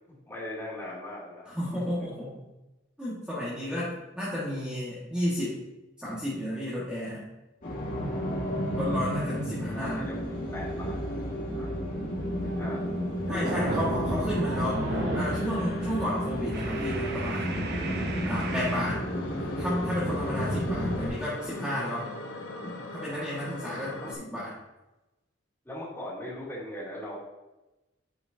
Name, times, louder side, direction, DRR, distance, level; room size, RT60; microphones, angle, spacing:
voice 1, 0.1-1.5 9.6-10.1 10.5-11.0 11.5-11.7 12.4-12.9 13.2-14.0 24.0-24.1 25.6-27.2, left 1 dB, 15° left, -8 dB, 2.7 m, -40 dB
voice 2, 1.5-2.5 3.0-5.6 6.0-7.3 8.7-10.0 13.3-14.9 15.1-17.6 18.3-19.0 19.4-22.1 22.6-24.5, equal, 5° right, -9 dB, 1.7 m, -32 dB
sound 1, 7.6-21.1, equal, 45° left, 1.9 m, -31 dB
sound 2, 12.4-12.7 13.0-15.5 15.8-16.0 16.5-18.8, right 2 dB, 55° right, 0.9 m, -34 dB
sound 3, 18.8-24.1, left 2 dB, 80° left, 1.0 m, -40 dB
9.2 x 6.0 x 2.7 m, 1.0 s
head